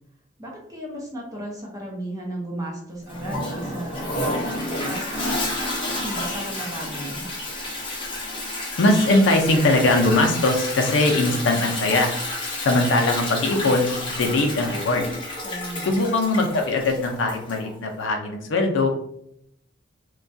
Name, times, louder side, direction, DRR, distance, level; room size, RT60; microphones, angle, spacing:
voice 1, 0.4-5.1 5.6-7.3 15.4-16.0, right 1 dB, 20° right, -2 dB, 0.6 m, -35 dB
Toilet flush, 3.1-17.7, left 1 dB, 25° left, 0.5 m, -30 dB
voice 2, 8.8-12.1 12.4-15.1 15.8-18.9, left 2 dB, 80° left, 3 dB, 0.4 m, -21 dB
2.2 x 2.2 x 2.5 m, 0.74 s
head